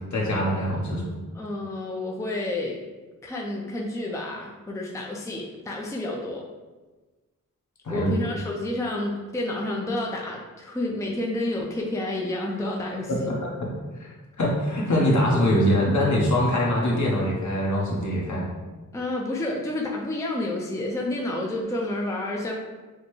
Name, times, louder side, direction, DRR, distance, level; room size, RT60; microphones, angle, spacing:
voice 1, 0.1-1.1 7.8-8.1 13.1-13.5 13.9-18.4, equal, 55° left, -4 dB, 1.2 m, -23 dB
voice 2, 1.3-2.8 3.2-6.4 7.9-13.3 18.9-22.5, left 1 dB, 10° left, -2 dB, 0.5 m, -30 dB
6.5 x 2.2 x 3.1 m, 1.2 s
wide cardioid pair, 100°, 34 cm